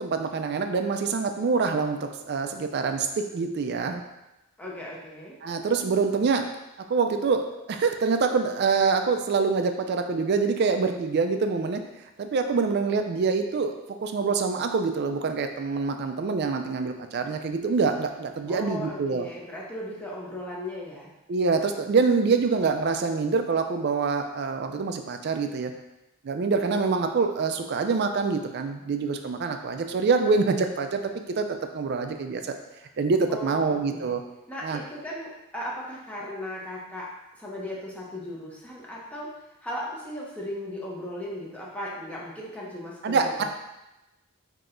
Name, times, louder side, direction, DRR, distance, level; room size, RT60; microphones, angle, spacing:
voice 1, 0.0-4.0 5.4-6.5 6.9-11.8 12.2-13.7 14.0-19.3 21.3-25.7 26.2-32.5 33.0-34.2 34.6-34.8 43.0-43.4, right 4 dB, 50° right, 6 dB, 0.4 m, -25 dB
voice 2, 4.6-5.3 18.4-21.1 33.3-34.1 34.5-37.1 37.4-39.3 39.6-43.4, left 1 dB, 5° left, -5 dB, 0.7 m, -37 dB
5.9 x 2.8 x 2.5 m, 0.97 s
head